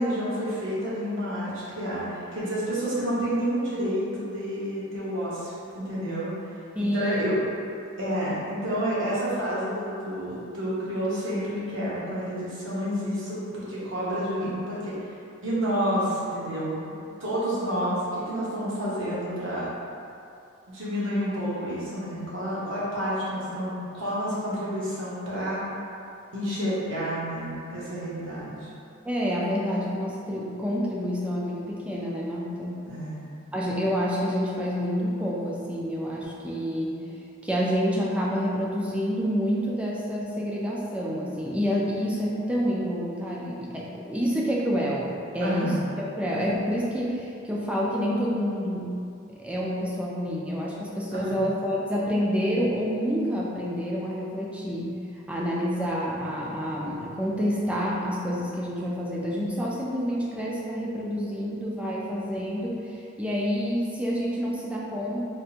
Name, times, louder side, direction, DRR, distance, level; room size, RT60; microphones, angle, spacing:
voice 1, 0.0-6.3 6.8-7.4 8.0-14.9 15.4-16.7 17.2-19.7 20.7-25.6 26.3-28.7 32.9-33.3 45.4-45.8 51.3-51.4, equal, 70° right, -8 dB, 1.0 m, -29 dB
voice 2, 6.8-7.3 29.0-32.8 33.5-37.0 37.4-48.9 49.4-54.9 55.3-65.2, equal, 5° right, -5 dB, 0.3 m, -28 dB
3.5 x 2.5 x 2.7 m, 2.6 s
head